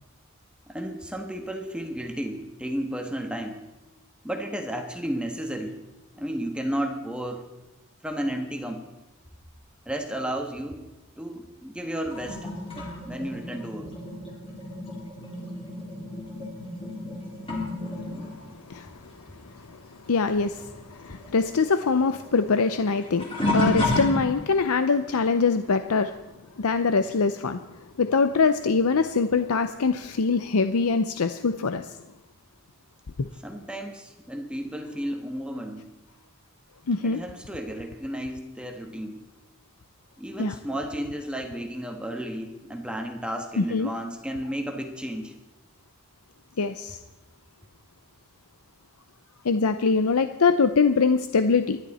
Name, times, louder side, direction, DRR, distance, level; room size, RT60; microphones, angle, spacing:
voice 1, 0.7-3.7 4.2-5.8 6.2-7.5 8.0-8.9 9.8-10.9 11.2-12.5 13.0-14.0 33.4-35.9 37.0-39.2 40.2-45.3, right 1 dB, 5° right, 4 dB, 1.3 m, -33 dB
sound 1, 12.1-20.1 20.3-24.7 25.3-25.6 27.9-28.0 28.8-28.9, left 1 dB, 25° left, 3.2 m, -32 dB
voice 2, 20.1-26.1 26.6-27.6 28.0-31.9 33.2-33.3 36.9-37.2 40.4-40.5 43.6-43.9 46.6-47.0 49.4-51.8, left 4 dB, 85° left, 10 dB, 0.6 m, -23 dB
26.0 x 11.5 x 4.2 m, 1.0 s
head